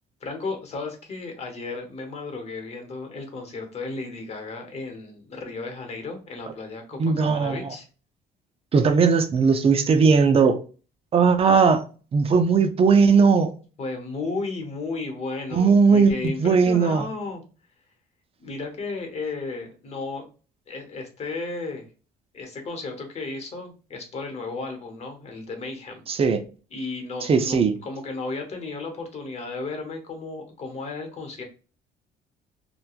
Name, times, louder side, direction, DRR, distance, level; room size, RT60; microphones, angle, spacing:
voice 1, 0.2-7.9 13.8-17.4 18.4-20.3 20.7-21.9 22.3-26.0 26.7-31.4, left 3 dB, 40° left, 0.9 m, -34 dB
voice 2, 7.0-7.6 8.7-10.6 11.1-11.8 12.1-13.5 15.5-17.1 26.1-26.4 27.3-27.7, right 5 dB, 35° right, 0.4 m, -18 dB
3.0 x 2.1 x 2.3 m
cardioid pair, 110°, 17 cm